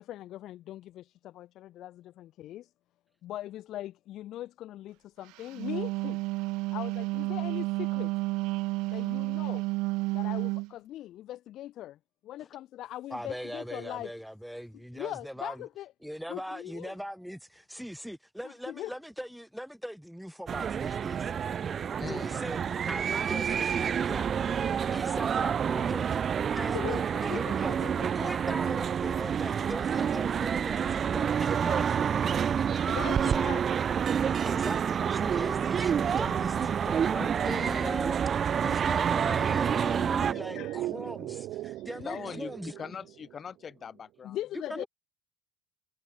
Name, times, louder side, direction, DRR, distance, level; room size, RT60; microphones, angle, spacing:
voice 1, 0.0-2.7 3.2-6.2 6.7-8.1 8.9-9.6 10.1-12.0 12.2-14.1 14.9-15.9 16.3-17.0 18.4-18.9 26.7-27.0 27.3-28.3 32.3-33.6 35.9-36.4 36.6-36.8 37.2-37.3 40.3-40.8 41.7-42.2 44.2-44.9, left 13 dB, 55° left, 2.0 m, -40 dB
Wind instrument woodwind instrument, 5.4-10.7, right 22 dB, 80° right, 1.0 m, -31 dB
voice 2, 13.1-15.6 16.0-21.3 21.7-24.3 24.9-26.1 26.5-27.7 28.2-32.0 33.3-33.6 34.4-42.7 44.7-44.9, equal, ahead, 4.5 m, -40 dB
sound 1, 20.5-40.3, right 7 dB, 35° right, 0.3 m, -28 dB
voice 3, 22.0-22.3 37.4-38.1 42.0-44.4, left 7 dB, 30° left, 3.7 m, -41 dB
sound 2, 39.1-43.7 44.0-44.1, right 15 dB, 60° right, 5.5 m, -39 dB
cardioid pair, 125°, 0 cm